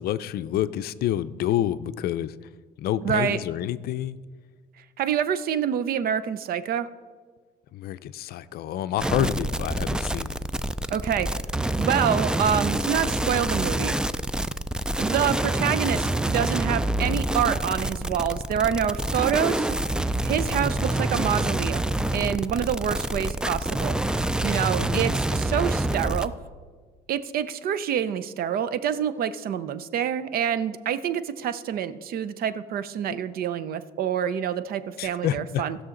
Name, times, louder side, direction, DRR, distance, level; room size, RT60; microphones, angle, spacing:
voice 1, 0.0-2.3 2.8-4.2 7.7-10.4 24.8-25.0 33.1-33.2 35.0-35.6, left 12 dB, 65° left, 13 dB, 0.5 m, -28 dB
voice 2, 3.0-3.4 5.0-6.9 10.9-11.3 11.8-13.9 15.0-19.8 20.2-21.9 22.1-26.3 27.1-35.8, right 9 dB, 60° right, 14 dB, 0.6 m, -27 dB
sound 1, 9.0-26.3, right 1 dB, 5° right, 0.3 m, -27 dB
19.0 x 6.4 x 3.8 m, 1.5 s
cardioid pair, 110°, 17 cm